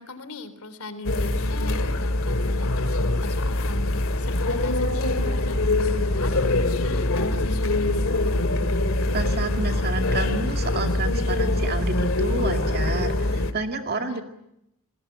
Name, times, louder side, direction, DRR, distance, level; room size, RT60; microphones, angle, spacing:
voice 1, 0.0-8.1 14.0-14.2, left 2 dB, 90° left, 11 dB, 3.8 m, -39 dB
sound 1, 1.0-13.5, left 2 dB, 70° left, 2.2 m, -24 dB
voice 2, 9.1-14.2, right 3 dB, 45° right, 5 dB, 2.1 m, -30 dB
30.0 x 21.0 x 8.8 m, 0.82 s
head